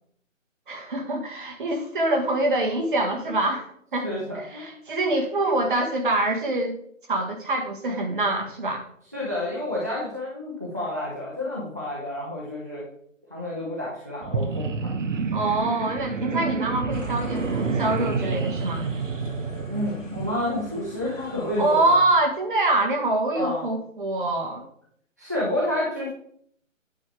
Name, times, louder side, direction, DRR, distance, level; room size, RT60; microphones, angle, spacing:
voice 1, 0.7-4.1 4.5-6.8 7.1-8.8 15.3-18.8 21.6-24.7, right 2 dB, 40° right, 3 dB, 1.6 m, -25 dB
voice 2, 4.0-4.8 9.1-12.8 13.3-15.0 19.7-22.0 23.3-23.6 25.2-26.1, left 1 dB, 15° right, -6 dB, 0.6 m, -29 dB
sound 1, 14.2-20.4, right 4 dB, 65° right, 0.9 m, -29 dB
sound 2, 16.9-22.0, left 2 dB, 65° left, 2.1 m, -42 dB
9.6 x 6.3 x 3.4 m, 0.66 s
figure-of-eight pair, 160°, 40 cm